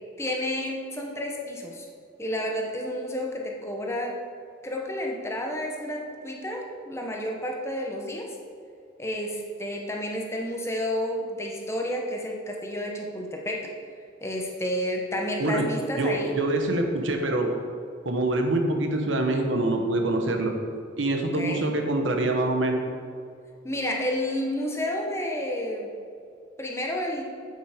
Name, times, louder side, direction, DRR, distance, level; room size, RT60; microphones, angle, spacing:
voice 1, 0.2-1.9 2.2-4.2 4.6-8.3 9.0-13.7 14.2-16.3 21.4-21.6 23.6-25.9 26.6-27.2, left 1 dB, 15° left, 0 dB, 1.0 m, -30 dB
voice 2, 16.0-17.5 18.0-20.5 21.0-22.8, right 2 dB, 75° right, 4 dB, 1.1 m, -25 dB
8.0 x 7.7 x 5.1 m, 2.4 s
head